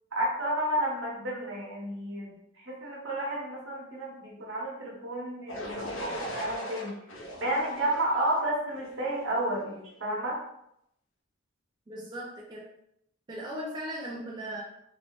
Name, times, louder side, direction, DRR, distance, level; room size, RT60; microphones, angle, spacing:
voice 1, 0.1-7.0 7.4-10.4, right 1 dB, 75° right, -4 dB, 0.9 m, -31 dB
sound 1, 5.5-9.4, equal, 85° left, 0.6 m, -39 dB
voice 2, 11.9-12.7 13.3-14.6, right 1 dB, 20° right, -4 dB, 0.3 m, -38 dB
2.6 x 2.0 x 3.0 m, 0.76 s
head